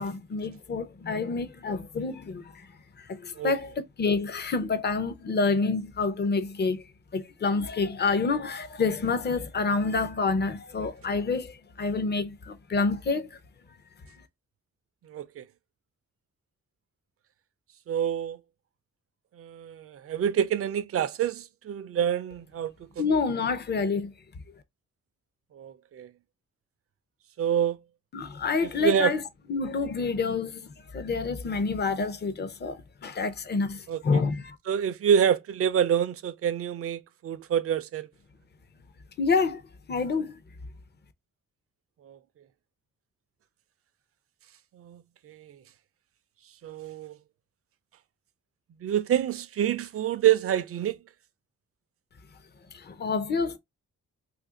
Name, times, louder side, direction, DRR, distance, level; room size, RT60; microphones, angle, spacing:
voice 1, 0.0-2.4 3.2-3.7 4.0-6.8 7.1-11.5 11.8-13.3 23.0-24.1 28.1-29.2 29.5-30.6 30.9-32.7 33.0-33.8 34.0-34.4 39.2-39.6 39.9-40.3 53.0-53.6, left 4 dB, 35° left, 0.6 m, -27 dB
voice 2, 15.1-15.4 17.9-18.4 19.4-22.9 25.5-26.1 27.4-27.8 28.8-29.1 33.9-34.0 34.7-38.1 42.0-42.2 44.7-45.6 46.6-47.1 48.8-51.0, right 9 dB, 50° right, 0.4 m, -27 dB
2.7 x 2.5 x 3.7 m
wide cardioid pair, 120°, 30 cm